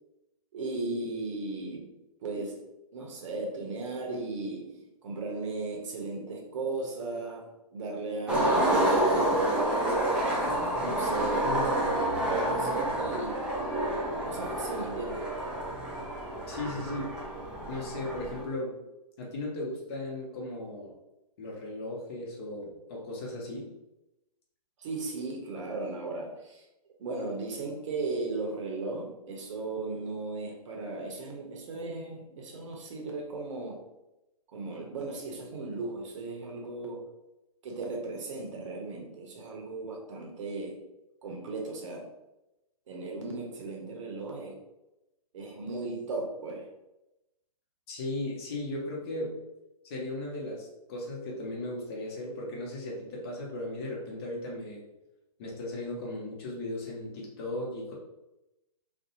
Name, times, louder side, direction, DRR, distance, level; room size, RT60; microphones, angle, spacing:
voice 1, 0.5-1.9 2.2-2.6 2.9-4.8 5.0-9.5 10.8-11.7 12.3-13.4 14.2-15.3 24.8-26.6 27.0-33.8 34.5-37.1 37.6-40.8 41.2-42.1 42.9-44.6 45.3-46.7, right 3 dB, 50° right, 1 dB, 0.7 m, -36 dB
Skateboard, 8.3-18.4, right 1 dB, 5° right, 0.4 m, -29 dB
voice 2, 16.5-17.1 17.7-18.8 19.2-20.9 21.4-23.7 47.9-49.4 49.8-54.8 55.4-57.9, left 1 dB, 40° left, -2 dB, 0.8 m, -36 dB
2.5 x 2.1 x 2.8 m, 0.94 s
hypercardioid pair, 130°, 20 cm